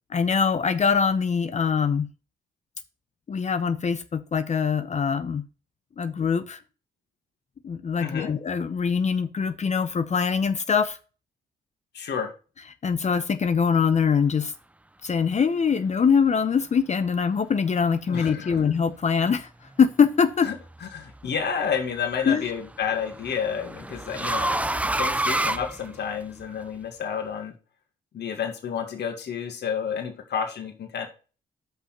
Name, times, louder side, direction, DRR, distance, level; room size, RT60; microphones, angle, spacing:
voice 1, 0.1-2.1 3.3-5.4 6.0-6.6 7.6-11.0 12.8-14.5 15.0-19.5 19.8-20.5 22.3-22.5, left 6 dB, 35° left, 0.7 m, -23 dB
voice 2, 8.0-8.3 11.9-12.3 18.1-18.6 20.4-20.5 20.8-27.5 28.1-31.1, left 7 dB, 60° left, 2.1 m, -30 dB
sound 1, 20.5-21.0 22.4-26.4, right 1 dB, 5° right, 0.4 m, -28 dB
5.6 x 5.6 x 5.9 m
cardioid pair, 90°, 20 cm